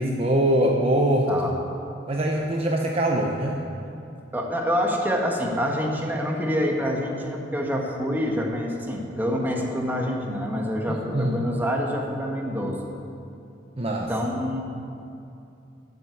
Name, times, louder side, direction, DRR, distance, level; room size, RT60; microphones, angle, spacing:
voice 1, 0.0-1.3 2.1-3.6 10.9-11.4 13.8-14.1, right 1 dB, 35° right, 0 dB, 0.9 m, -23 dB
voice 2, 4.3-12.8 14.1-14.6, equal, 10° right, 0 dB, 1.5 m, -26 dB
12.0 x 7.8 x 8.5 m, 2.7 s
head